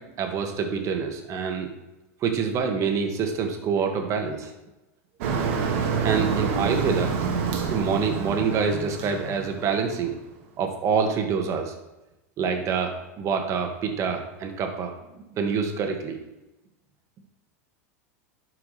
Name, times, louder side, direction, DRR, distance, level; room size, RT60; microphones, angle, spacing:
voice 1, 0.2-1.7 2.2-4.5 6.0-7.1 7.6-10.1 10.6-11.7 12.4-14.9 15.3-16.2, right 6 dB, 40° right, 4 dB, 1.5 m, -26 dB
Motor vehicle (road), 5.2-10.2, right 5 dB, 65° right, 1.3 m, -27 dB
11.5 x 4.8 x 3.2 m, 1.0 s
hypercardioid pair, 105°, 8 cm